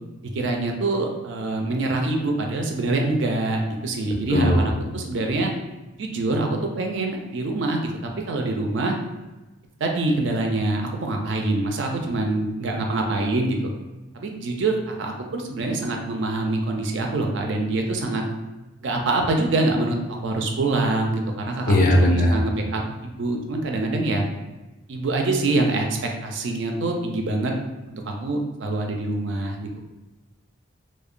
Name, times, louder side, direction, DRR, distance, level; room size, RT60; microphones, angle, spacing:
voice 1, 0.3-5.5 6.0-7.9 8.3-8.9 9.8-13.7 14.1-18.2 18.8-24.3 24.9-27.5 27.9-29.8, right 2 dB, 60° right, 2 dB, 0.4 m, -25 dB
voice 2, 4.3-4.7 21.7-22.4, left 1 dB, 40° left, 0 dB, 0.4 m, -18 dB
2.8 x 2.1 x 2.4 m, 1.1 s
head